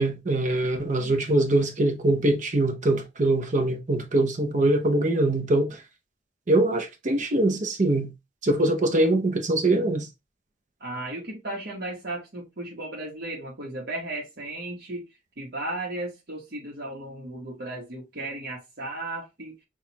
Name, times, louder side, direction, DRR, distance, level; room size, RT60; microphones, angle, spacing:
voice 1, 0.0-5.8 6.5-8.1 8.4-10.1, right 2 dB, 45° right, 0.6 m, -23 dB
voice 2, 1.0-1.5 10.8-15.0 15.4-19.5, right 2 dB, 60° right, 1.0 m, -35 dB
6.0 x 2.4 x 2.9 m
head